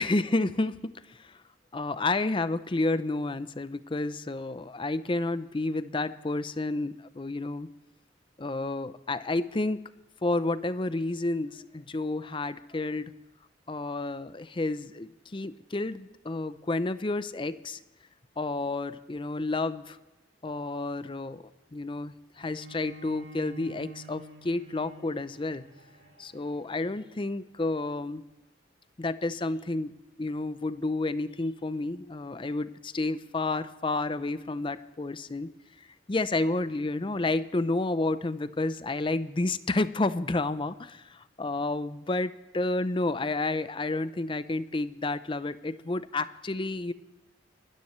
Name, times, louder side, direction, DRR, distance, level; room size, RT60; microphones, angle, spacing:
voice 1, 0.0-1.4 1.7-7.7 8.4-9.8 10.2-13.1 13.7-17.8 18.4-20.0 20.4-21.4 21.7-25.7 26.2-28.2 29.0-29.9 30.2-35.5 36.1-46.9, left 2 dB, 25° left, 14 dB, 0.5 m, -30 dB
Bowed string instrument, 22.4-27.6, right 5 dB, 85° right, 2.3 m, -49 dB
25.5 x 13.0 x 3.2 m, 1.1 s
head